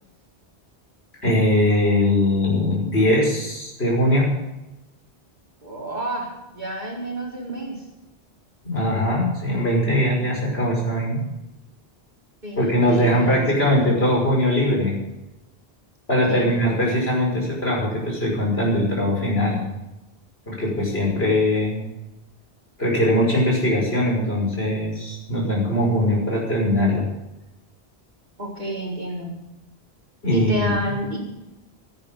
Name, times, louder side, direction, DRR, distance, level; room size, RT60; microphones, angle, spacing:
voice 1, 1.2-4.3 8.6-11.2 12.6-14.9 16.1-19.7 20.5-21.8 22.8-27.1 30.2-30.7, left 1 dB, 70° left, -2 dB, 6.0 m, -21 dB
voice 2, 5.6-7.8 12.4-13.8 16.3-16.5 28.4-29.3 30.3-31.2, right 1 dB, 45° right, -2 dB, 4.5 m, -30 dB
15.5 x 13.5 x 5.5 m, 1.0 s
omnidirectional pair, 1.1 m